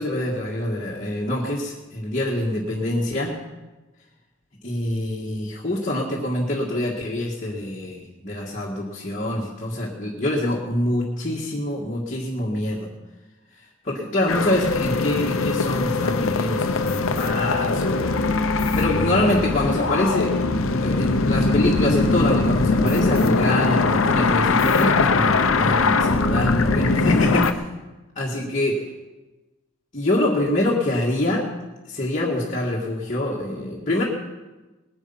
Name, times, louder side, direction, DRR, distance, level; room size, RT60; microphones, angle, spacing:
voice 1, 0.0-3.4 4.6-12.9 13.6-18.2 18.5-20.5 20.8-27.6 28.2-28.9 29.9-31.5 31.9-34.0, left 1 dB, 35° left, -4 dB, 1.9 m, -25 dB
sound 1, 14.3-27.5, left 3 dB, 75° left, 0.9 m, -21 dB
20.5 x 9.8 x 5.8 m, 1.1 s
head